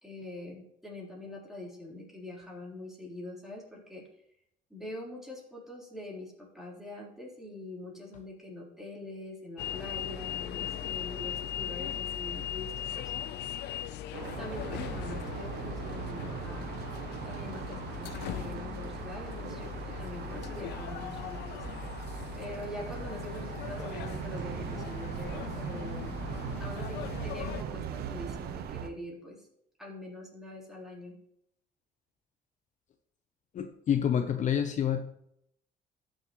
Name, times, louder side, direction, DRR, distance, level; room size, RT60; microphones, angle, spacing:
voice 1, 0.0-4.0 4.7-13.1 14.2-16.7 17.2-21.6 22.3-26.1 26.6-29.5 29.8-31.1, left 1 dB, ahead, -4 dB, 3.8 m, -44 dB
sound 1, 9.6-27.6, left 10 dB, 80° left, 0.7 m, -39 dB
sound 2, 14.1-28.9, right 8 dB, 70° right, 0.8 m, -40 dB
voice 2, 33.5-35.1, left 8 dB, 45° left, 7 dB, 0.8 m, -28 dB
13.5 x 6.6 x 3.1 m, 0.73 s
cardioid pair, 110°, 17 cm